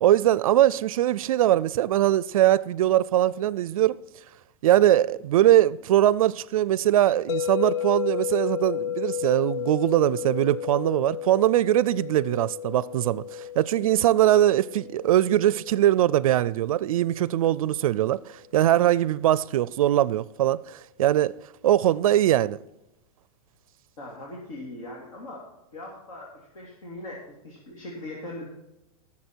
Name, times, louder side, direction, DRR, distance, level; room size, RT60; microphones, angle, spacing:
voice 1, 0.0-4.0 4.6-21.4 21.6-22.6, right 13 dB, 70° right, 0.4 m, -21 dB
sound 1, 7.3-17.4, left 10 dB, 50° left, 0.4 m, -33 dB
voice 2, 24.0-25.4 25.7-28.5, left 1 dB, 70° left, 3.0 m, -40 dB
18.5 x 7.3 x 4.5 m
supercardioid pair, 170°, 19 cm